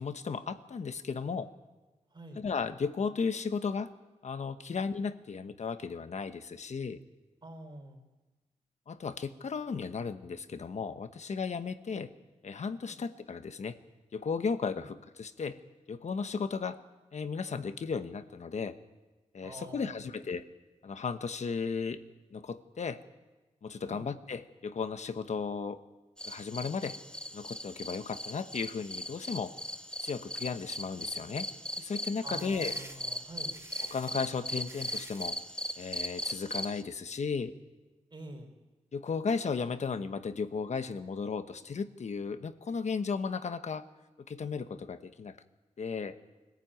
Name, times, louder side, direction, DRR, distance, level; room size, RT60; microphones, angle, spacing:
voice 1, 0.0-1.5 2.3-3.9 4.2-7.0 8.9-12.1 12.4-13.8 14.1-15.6 15.9-16.8 17.1-18.8 19.3-20.4 20.8-22.0 22.3-23.0 23.6-25.8 26.2-27.0 27.3-29.5 30.0-31.5 31.8-32.7 33.9-35.3 35.8-37.5 38.9-43.8 44.3-45.4 45.8-46.2, left 5 dB, 65° left, 10 dB, 1.1 m, -35 dB
voice 2, 2.1-2.4 4.7-4.8 7.4-8.0 12.9-13.0 14.7-14.9 19.4-20.1 23.8-24.0 32.2-33.6 38.1-38.5, right 2 dB, 40° right, 2 dB, 4.5 m, -47 dB
sound 1, 26.2-36.8, equal, 5° left, 1.2 m, -39 dB
sound 2, 32.4-35.4, right 2 dB, 20° right, 1.9 m, -50 dB
23.5 x 14.5 x 9.1 m, 1.2 s
wide cardioid pair, 115°, 13 cm